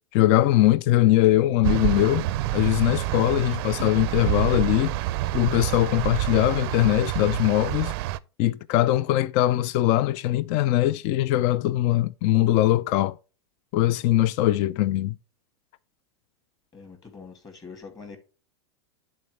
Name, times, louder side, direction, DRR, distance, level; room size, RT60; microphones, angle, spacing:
voice 1, 0.1-2.3 2.5-5.0 5.3-7.9 8.4-13.2 13.7-15.2, left 14 dB, 50° left, 0.5 m, -21 dB
sound 1, 1.6-8.2, right 16 dB, 60° right, 0.5 m, -28 dB
voice 2, 16.7-18.2, left 5 dB, 25° left, 2.7 m, -43 dB
10.5 x 4.3 x 3.3 m
hypercardioid pair, 110°, 14 cm